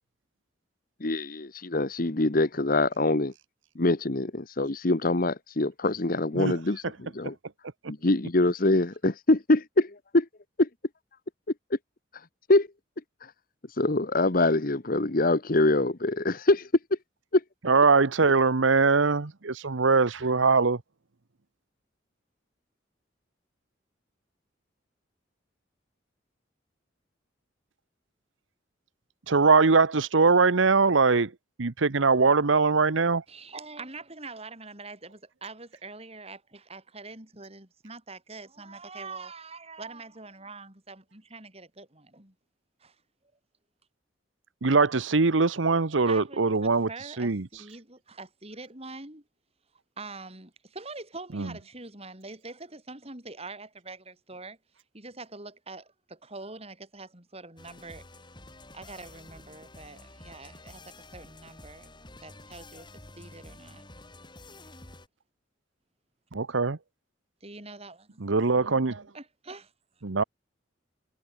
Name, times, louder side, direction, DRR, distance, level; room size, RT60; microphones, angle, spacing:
voice 1, 1.0-3.3 3.7-7.3 7.9-10.3 10.6-10.7 11.7-11.8 12.5-12.7 13.2-13.3 13.8-17.0 17.3-17.4, left 2 dB, 50° left, 1.2 m, -24 dB
voice 2, 17.6-20.8 29.3-31.3 31.6-33.2 44.6-47.5 51.3-51.5 66.3-66.8 68.2-69.0 70.0-70.2, right 4 dB, 90° right, 1.0 m, -22 dB
voice 3, 33.3-42.3 42.8-43.0 46.1-49.2 50.0-54.6 54.9-58.1 58.7-61.9 62.2-62.9 63.2-63.8 67.4-68.2 69.1-69.7, right 3 dB, 35° right, 6.3 m, -44 dB
sound 1, 57.6-65.1, left 2 dB, 25° left, 6.4 m, -49 dB
head